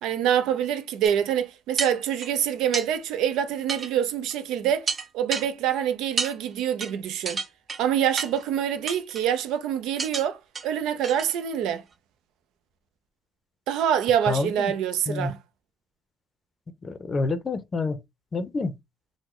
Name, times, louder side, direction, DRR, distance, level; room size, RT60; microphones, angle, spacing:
voice 1, 0.0-7.4 7.8-11.8 13.7-15.4, right 9 dB, 85° right, 0.5 m, -26 dB
sound 1, 1.0-1.1 1.8-2.3 2.7-2.9 3.7-3.9 4.3-4.4 4.9-5.5 6.2-6.3 6.8-6.9 7.3-7.8 8.2-8.4 8.9-9.3 10.0-10.3 10.6-10.7 11.0-11.3 11.7-11.8, right 4 dB, 35° right, 0.6 m, -30 dB
voice 2, 14.3-14.7 15.1-15.3 16.8-18.0 18.3-18.7, left 3 dB, 35° left, 0.5 m, -28 dB
3.7 x 2.0 x 3.0 m
cardioid pair, 110°, 0 cm